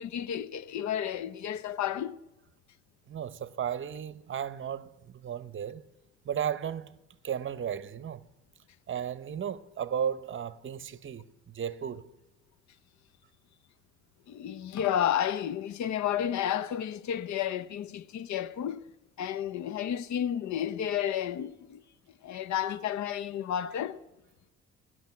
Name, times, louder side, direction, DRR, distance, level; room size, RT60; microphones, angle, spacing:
voice 1, 0.0-2.2 14.3-18.8 19.2-21.8 22.2-24.0, left 10 dB, 70° left, 0.7 m, -31 dB
voice 2, 3.1-5.8 6.2-7.0 7.2-8.3 8.9-12.1, right 8 dB, 40° right, 0.7 m, -34 dB
18.0 x 6.3 x 9.4 m
cardioid pair, 90°, 30 cm